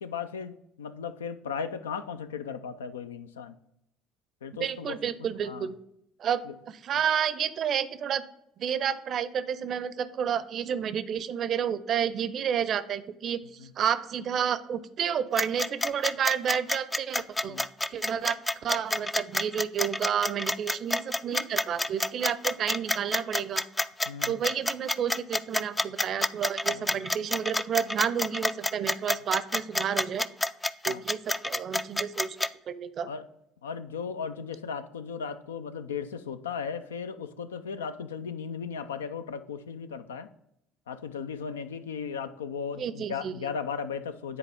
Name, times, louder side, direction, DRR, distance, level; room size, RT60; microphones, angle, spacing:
voice 1, 0.0-3.6 4.4-5.0 5.4-5.7 6.5-6.6 13.6-13.7 17.4-17.7 24.1-24.3 26.7-26.9 30.9-31.0 33.1-33.3 33.6-40.3 40.9-44.4, left 6 dB, 90° left, 11 dB, 0.4 m, -36 dB
voice 2, 4.6-5.8 6.2-8.2 8.6-13.4 13.8-18.4 18.6-23.7 24.3-30.2 30.8-32.4 32.7-33.1 42.8-43.3, right 8 dB, 50° right, 14 dB, 0.5 m, -30 dB
sound 1, 15.4-32.5, left 2 dB, 15° left, 0.3 m, -28 dB
9.8 x 4.0 x 3.5 m, 0.78 s
hypercardioid pair, 65°, 0 cm